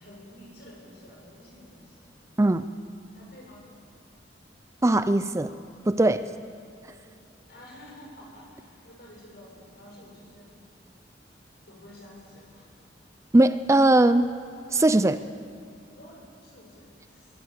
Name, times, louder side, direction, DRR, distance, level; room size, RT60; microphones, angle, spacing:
voice 1, 0.0-2.1 3.2-3.7 6.2-6.3 7.5-10.6 11.6-12.7 16.0-17.4, left 1 dB, 60° left, -2 dB, 7.3 m, -50 dB
voice 2, 4.8-5.5 5.9-6.3 13.3-14.2 14.7-15.3, right 2 dB, 15° right, 12 dB, 0.4 m, -20 dB
23.5 x 16.0 x 8.1 m, 2.7 s
head